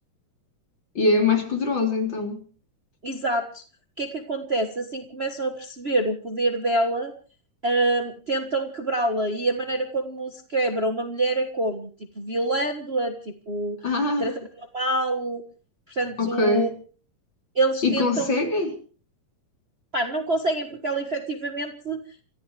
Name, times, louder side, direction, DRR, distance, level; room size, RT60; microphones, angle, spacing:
voice 1, 1.0-2.4 13.8-14.3 16.2-16.7 17.8-18.7, left 3 dB, 35° left, 2 dB, 4.2 m, -23 dB
voice 2, 3.0-3.6 4.0-7.1 7.6-11.9 12.1-13.8 14.2-14.4 14.7-15.4 15.9-16.7 17.5-18.3 19.9-22.0, right 2 dB, 65° right, 5 dB, 0.6 m, -26 dB
29.0 x 14.5 x 3.4 m, 0.40 s
omnidirectional pair, 3.6 m